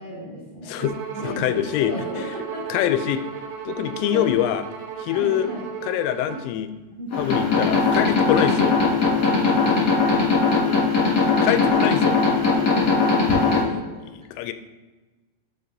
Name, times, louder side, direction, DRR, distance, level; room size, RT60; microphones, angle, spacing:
voice 1, 0.0-0.8 1.1-2.7 4.1-4.2 5.1-5.6 6.2-6.3 7.0-7.1 9.0-9.9 10.7-10.8 12.0-13.1, right 1 dB, 45° right, -7 dB, 2.6 m, -35 dB
Bowed string instrument, 0.8-6.5, right 8 dB, 80° right, 3.4 m, -35 dB
voice 2, 1.2-1.9 2.7-3.2 3.6-4.6 5.0-5.5 5.8-6.7 7.2-8.8 11.2-12.2 13.7-13.8 14.0-14.5, left 12 dB, 85° left, 10 dB, 3.0 m, -24 dB
sound 1, 7.1-13.6, left 4 dB, 50° left, 2.0 m, -20 dB
11.0 x 5.8 x 2.7 m, 1.2 s
omnidirectional pair, 5.8 m